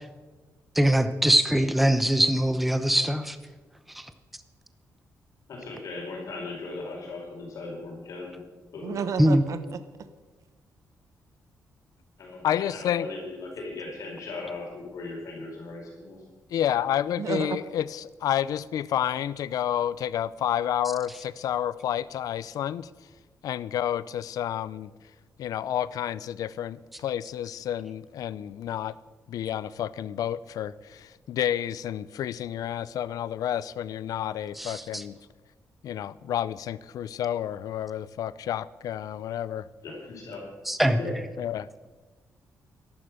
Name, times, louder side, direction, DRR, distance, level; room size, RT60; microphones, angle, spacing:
voice 1, 0.7-3.4 3.9-4.1 9.2-9.4 34.6-35.0 40.7-41.0, right 1 dB, ahead, 10 dB, 0.8 m, -22 dB
voice 2, 5.5-8.4 8.7-9.0 12.2-16.2 39.8-40.4 40.8-41.1, left 3 dB, 65° left, -1 dB, 4.7 m, -38 dB
voice 3, 8.8-9.8 17.2-17.6, right 6 dB, 60° right, 11 dB, 0.9 m, -31 dB
voice 4, 12.4-13.1 16.5-22.9 23.4-24.9 25.4-28.9 29.3-35.1 35.8-39.7 41.4-41.7, left 10 dB, 80° left, 19 dB, 0.5 m, -30 dB
13.5 x 11.5 x 6.6 m, 1.3 s
cardioid pair, 125°, 6 cm